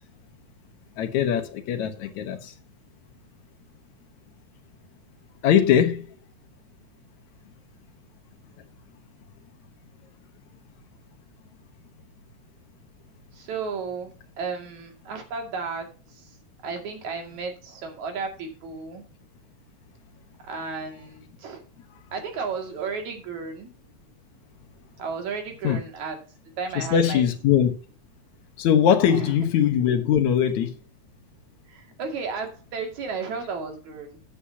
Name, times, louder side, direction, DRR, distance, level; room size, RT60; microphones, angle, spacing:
voice 1, 1.0-2.5 5.4-6.1 25.6-25.8 26.8-27.8 28.6-30.8, left 9 dB, 80° left, 2.5 m, -21 dB
voice 2, 13.3-15.9 16.1-16.3 16.6-19.1 20.4-21.6 22.1-23.7 25.0-26.2 26.6-27.2 29.1-29.3 31.7-34.2, right 5 dB, 80° right, 3.7 m, -33 dB
12.0 x 8.8 x 2.8 m
omnidirectional pair, 3.3 m